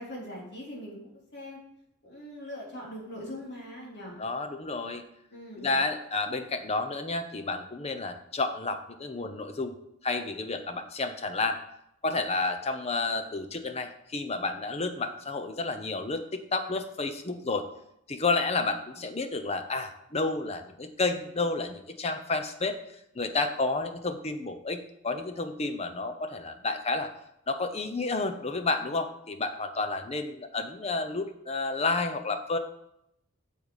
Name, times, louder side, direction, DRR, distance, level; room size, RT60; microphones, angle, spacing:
voice 1, 0.0-1.6 2.0-4.2 5.3-5.7, equal, 55° left, -4 dB, 3.6 m, -41 dB
voice 2, 4.2-5.0 5.6-9.7 10.0-11.6 12.0-17.6 18.1-22.8 23.1-27.1 27.5-32.6, left 3 dB, 30° left, 8 dB, 0.8 m, -31 dB
9.0 x 7.0 x 4.9 m, 0.77 s
head